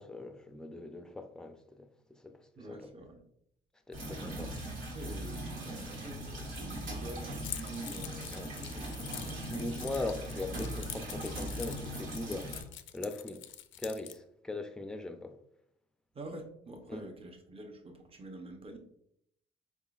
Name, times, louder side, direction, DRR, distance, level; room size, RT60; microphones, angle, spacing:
voice 1, 0.0-1.9 2.2-2.9 3.9-4.5 8.3-8.8 9.5-12.5 12.9-13.4 13.8-15.4 16.9-17.1, left 2 dB, 5° left, 0.4 m, -40 dB
voice 2, 2.6-3.2 4.9-9.4 9.8-9.9 16.1-18.8, right 2 dB, 30° right, 0.8 m, -47 dB
sound 1, 3.9-12.6, right 1 dB, 80° right, 1.6 m, -40 dB
Keys jangling, 7.4-14.2, left 12 dB, 75° left, 0.4 m, -45 dB
4.6 x 3.6 x 2.4 m
cardioid pair, 90°, 20 cm